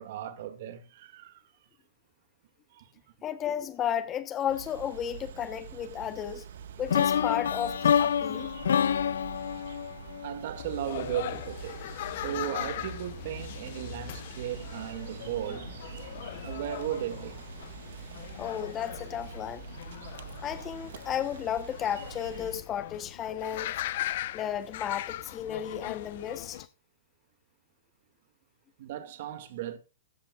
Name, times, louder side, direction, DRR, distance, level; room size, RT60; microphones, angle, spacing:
voice 1, 0.0-1.4 2.7-2.9 10.2-11.8 12.1-15.7 16.4-17.4 28.8-29.8, right 11 dB, 50° right, 2.2 m, -36 dB
voice 2, 3.2-6.4 6.8-8.5 18.3-19.7 20.4-23.7 24.3-26.7, left 9 dB, 20° left, 1.0 m, -33 dB
sound 1, 4.5-22.6, right 8 dB, 65° right, 1.5 m, -45 dB
sound 2, 6.9-10.9, left 8 dB, 85° left, 0.6 m, -27 dB
sound 3, 10.5-26.7, left 13 dB, 50° left, 0.9 m, -40 dB
15.5 x 13.5 x 2.4 m
hypercardioid pair, 160°, 0 cm